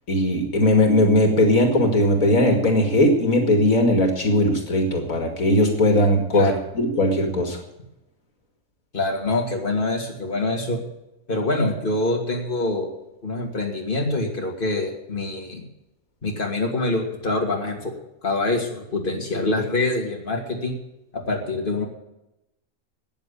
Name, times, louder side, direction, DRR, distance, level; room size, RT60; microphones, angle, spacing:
voice 1, 0.1-7.6, left 1 dB, 80° left, 4 dB, 2.6 m, -19 dB
voice 2, 8.9-10.8 11.3-12.9 13.2-15.6 16.2-17.9 18.2-20.8 21.1-21.9, left 2 dB, 40° left, 0 dB, 2.8 m, -25 dB
14.0 x 9.2 x 8.5 m, 0.90 s
omnidirectional pair, 1.4 m